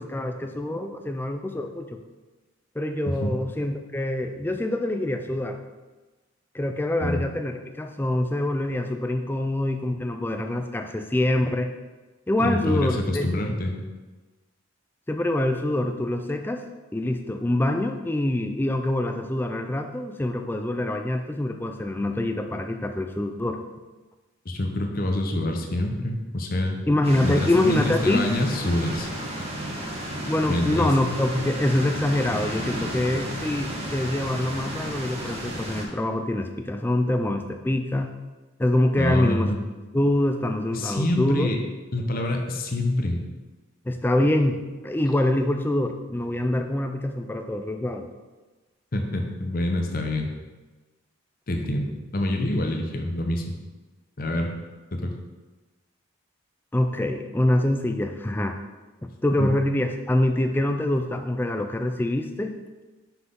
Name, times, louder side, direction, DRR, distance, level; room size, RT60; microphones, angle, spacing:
voice 1, 0.0-2.0 2.8-5.6 6.5-11.7 12.3-13.4 15.1-16.6 16.9-23.6 26.9-28.3 30.2-38.1 38.6-39.5 39.9-41.5 43.9-48.1 56.7-58.6 59.2-62.6, left 1 dB, 10° left, 6 dB, 0.3 m, -25 dB
voice 2, 12.4-13.8 24.5-26.8 27.2-29.1 30.5-30.9 39.0-39.6 40.7-41.6 41.9-43.2 48.9-50.3 51.5-53.4 54.2-54.5 54.9-55.1 59.4-59.5, left 1 dB, 40° left, 3 dB, 0.7 m, -26 dB
sound 1, 27.0-35.8, right 1 dB, 30° right, 1.1 m, -32 dB
5.9 x 5.8 x 3.7 m, 1.2 s
head